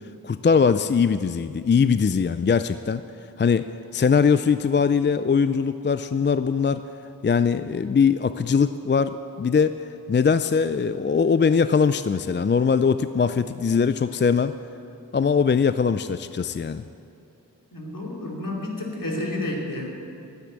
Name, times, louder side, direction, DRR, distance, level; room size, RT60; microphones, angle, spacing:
voice 1, 0.2-3.0 3.4-3.7 3.9-6.8 7.2-14.5 15.1-16.8, left 6 dB, 30° left, 12 dB, 0.4 m, -21 dB
voice 2, 17.7-19.9, left 1 dB, 65° left, -1 dB, 2.9 m, -30 dB
12.5 x 10.0 x 8.7 m, 2.7 s
wide cardioid pair, 45°, 36 cm